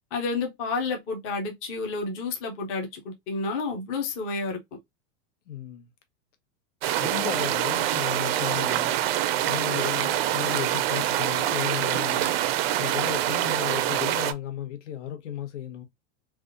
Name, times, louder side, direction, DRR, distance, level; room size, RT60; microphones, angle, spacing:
voice 1, 0.1-4.6, left 3 dB, 20° left, 0.4 m, -30 dB
voice 2, 5.5-5.9 7.0-8.9 9.5-12.3 12.8-15.8, left 10 dB, 85° left, 1.1 m, -34 dB
sound 1, 6.8-14.3, right 12 dB, 55° right, 0.5 m, -25 dB
3.4 x 2.4 x 2.5 m
supercardioid pair, 180°, 36 cm